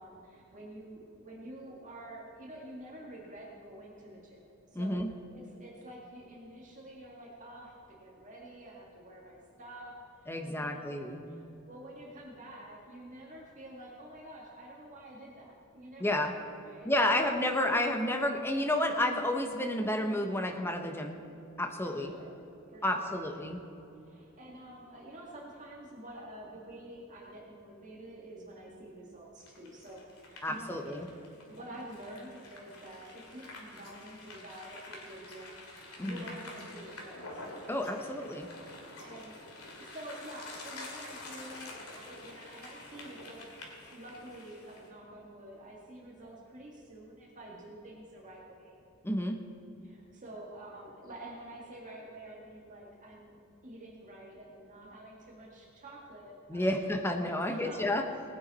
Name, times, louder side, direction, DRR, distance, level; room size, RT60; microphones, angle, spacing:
voice 1, 0.0-4.4 4.7-5.0 5.3-9.9 10.2-10.9 11.6-17.3 21.8-22.4 22.7-23.2 24.0-31.0 31.5-37.4 38.2-38.3 39.0-43.5 43.8-48.8 49.8-56.8 57.4-58.2, right 1 dB, 35° right, -3 dB, 1.8 m, -48 dB
voice 2, 4.7-5.1 10.3-11.3 16.0-16.3 16.8-21.2 21.6-22.1 22.8-23.6 30.4-31.1 36.0-36.2 37.7-38.5 49.0-49.4 56.5-58.0, left 1 dB, 10° left, 4 dB, 1.0 m, -30 dB
sound 1, 29.4-44.9, left 2 dB, 85° left, 2.4 m, -48 dB
19.5 x 9.5 x 4.2 m, 2.9 s
head